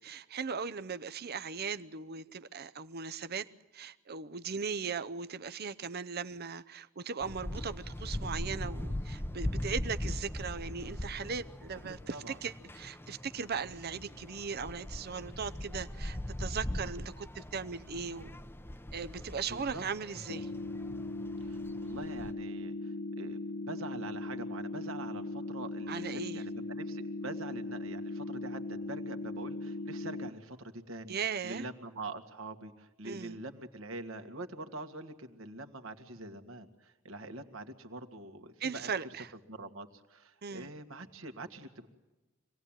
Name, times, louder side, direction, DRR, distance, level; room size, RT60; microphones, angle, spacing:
voice 1, 0.0-3.5 3.7-18.3 18.9-20.5 25.9-26.4 31.1-31.7 33.0-33.4 38.6-39.3 40.4-40.7, right 5 dB, 50° right, 0.8 m, -38 dB
sound 1, 7.2-22.3, left 1 dB, 10° left, 0.8 m, -40 dB
voice 2, 19.5-19.8 21.4-31.2 31.4-38.9 39.5-41.9, right 2 dB, 75° right, 2.0 m, -44 dB
sound 2, 20.3-30.3, left 2 dB, 75° left, 1.2 m, -39 dB
25.5 x 18.5 x 9.0 m
head